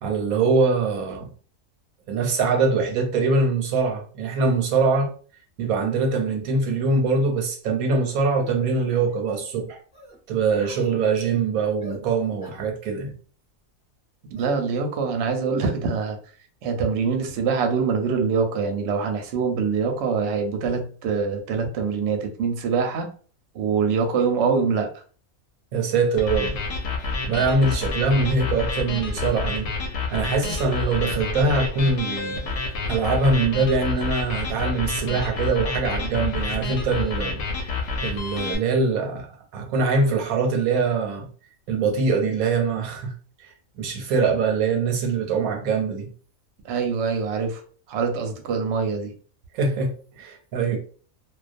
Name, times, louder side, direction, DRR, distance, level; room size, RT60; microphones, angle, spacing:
voice 1, 0.0-1.3 2.1-5.1 5.6-9.8 10.3-13.1 25.7-26.6 27.3-29.7 30.1-32.5 32.9-37.7 38.0-39.3 39.5-41.3 41.7-43.1 43.8-46.1 49.5-50.8, right 4 dB, 90° right, 1.1 m, -23 dB
sound 1, 8.4-8.5 8.9-9.1 9.9-10.2 10.5-10.9 11.8-12.0 12.4-12.7 14.3-14.6, right 1 dB, 5° right, 0.6 m, -43 dB
voice 2, 14.3-16.2 16.6-23.1 23.5-24.9 46.6-47.6 47.9-49.1, right 5 dB, 65° right, 0.8 m, -24 dB
sound 2, 26.2-38.6, left 3 dB, 65° left, 0.8 m, -28 dB
2.2 x 2.2 x 2.4 m
omnidirectional pair, 1.5 m